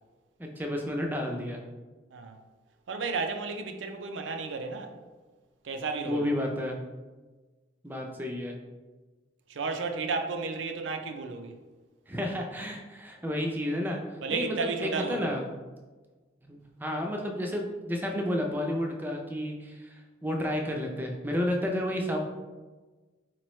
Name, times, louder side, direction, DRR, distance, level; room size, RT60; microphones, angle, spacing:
voice 1, 0.4-1.6 6.1-6.8 7.8-8.6 12.1-14.0 14.3-15.4 16.4-22.2, left 1 dB, 10° right, 0.4 m, -31 dB
voice 2, 2.9-4.9 5.6-6.4 9.5-11.6 14.2-15.3, right 4 dB, 80° right, 0.5 m, -33 dB
4.4 x 3.0 x 3.1 m
head